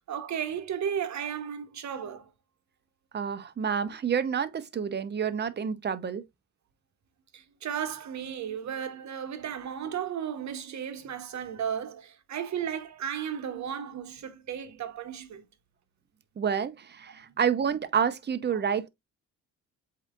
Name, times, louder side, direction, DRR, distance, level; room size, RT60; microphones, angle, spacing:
voice 1, 0.0-2.3 7.3-15.5 17.2-17.4 18.5-18.7, right 8 dB, 55° right, 1.0 m, -34 dB
voice 2, 3.1-6.2 16.4-18.9, right 7 dB, 30° right, 0.7 m, -29 dB
7.9 x 2.8 x 2.4 m
cardioid pair, 85°, 34 cm